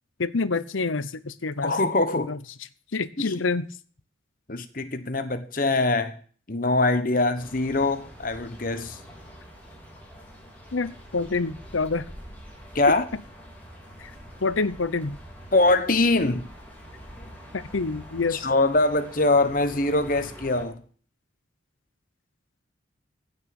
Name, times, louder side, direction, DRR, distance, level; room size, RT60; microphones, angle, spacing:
voice 1, 0.2-1.8 2.3-2.4 2.9-3.7 10.7-12.1 12.9-13.0 14.0-14.1 14.4-15.2 17.5-18.5, left 4 dB, 85° left, 0.9 m, -27 dB
voice 2, 1.6-2.3 4.5-6.2 6.5-9.0 12.7-13.0 15.5-16.5 18.4-20.8, left 2 dB, 45° left, 1.3 m, -23 dB
sound 1, 7.3-20.7, equal, 10° left, 3.5 m, -45 dB
16.0 x 6.6 x 7.0 m
head